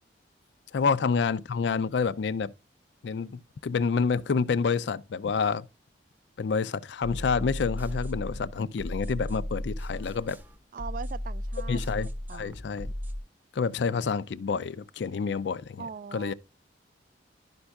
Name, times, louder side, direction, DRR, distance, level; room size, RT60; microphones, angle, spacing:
voice 1, 0.7-2.5 3.0-5.7 6.4-10.4 11.7-12.9 13.5-16.3, left 5 dB, 70° left, 0.4 m, -28 dB
sound 1, 7.0-13.2, equal, 10° right, 0.8 m, -35 dB
voice 2, 10.7-11.8 12.3-12.6 15.8-16.3, right 5 dB, 45° right, 0.3 m, -40 dB
11.5 x 5.3 x 2.3 m
head